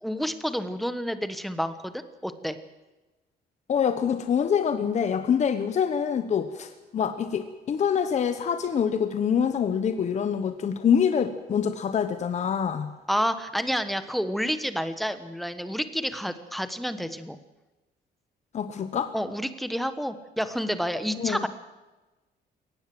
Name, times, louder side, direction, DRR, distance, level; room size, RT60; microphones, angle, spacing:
voice 1, 0.0-2.6 13.1-17.4 19.1-21.5, equal, ahead, 11 dB, 1.2 m, -29 dB
voice 2, 3.7-12.9 18.5-19.1 21.2-21.5, left 7 dB, 40° left, 8 dB, 1.2 m, -25 dB
22.0 x 18.0 x 7.8 m, 1.1 s
cardioid pair, 170°, 18 cm